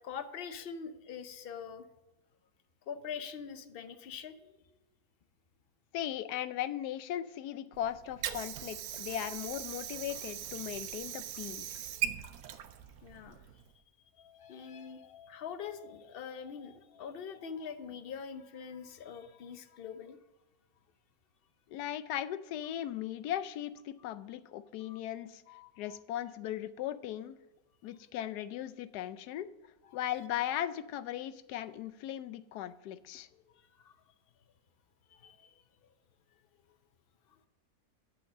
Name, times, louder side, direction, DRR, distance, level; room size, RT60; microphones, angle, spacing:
voice 1, 0.0-1.8 2.9-4.5 13.0-13.4 14.2-20.2 24.8-25.0 25.5-26.0 29.9-30.0 33.3-33.4 33.7-33.9 35.1-35.6, left 7 dB, 60° left, 10 dB, 0.6 m, -44 dB
voice 2, 5.9-11.7 21.7-25.4 25.8-27.4 27.8-29.5 29.9-33.3, left 11 dB, 85° left, 13 dB, 1.1 m, -38 dB
Water / Sink (filling or washing), 7.7-13.7, right 10 dB, 75° right, 1.1 m, -40 dB
7.9 x 6.4 x 7.2 m, 0.98 s
omnidirectional pair, 1.7 m